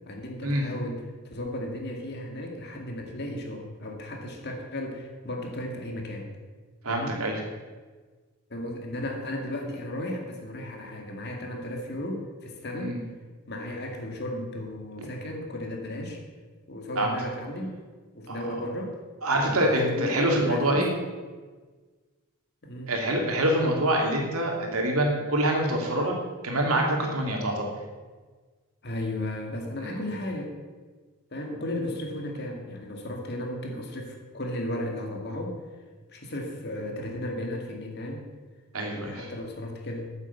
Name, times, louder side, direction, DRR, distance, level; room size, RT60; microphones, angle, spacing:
voice 1, 0.1-6.3 6.9-7.2 8.5-13.0 13.5-16.2 16.7-17.8 18.1-19.0 19.3-20.9 22.6-23.0 28.8-30.6 31.3-35.6 36.1-38.2 38.9-40.1, left 1 dB, 50° left, 2 dB, 2.2 m, -35 dB
voice 2, 6.8-7.4 12.8-13.0 17.0-17.1 18.3-18.4 19.2-20.9 22.9-26.1 26.4-27.7 29.8-30.0 38.7-39.3, right 1 dB, 85° right, 1 dB, 2.8 m, -25 dB
9.1 x 8.7 x 8.4 m, 1.4 s
head